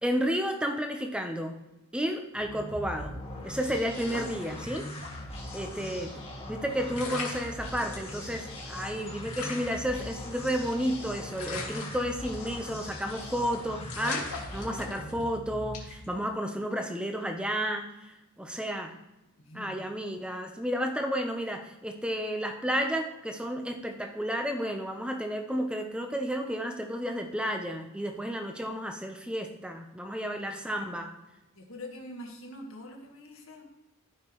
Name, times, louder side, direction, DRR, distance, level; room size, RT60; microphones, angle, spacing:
voice 1, 0.0-1.6 1.9-3.2 3.4-4.9 5.5-6.1 6.5-19.0 19.5-31.1, equal, 5° right, 4 dB, 0.8 m, -32 dB
sound 1, 2.3-16.1, left 1 dB, 25° left, 1.9 m, -40 dB
sound 2, 3.9-5.1 5.5-5.6 6.6-6.7 6.9-8.1 8.6-8.7 8.9-9.0 9.3-10.9 11.4-12.6 12.9-13.2 13.5-13.6 13.9-15.3 15.7-16.0, left 4 dB, 85° left, 2.3 m, -39 dB
voice 2, 5.6-6.1 19.4-19.8 30.4-30.6 31.6-33.6, left 1 dB, 65° left, 1 dB, 1.7 m, -45 dB
14.0 x 5.8 x 3.1 m, 0.97 s
head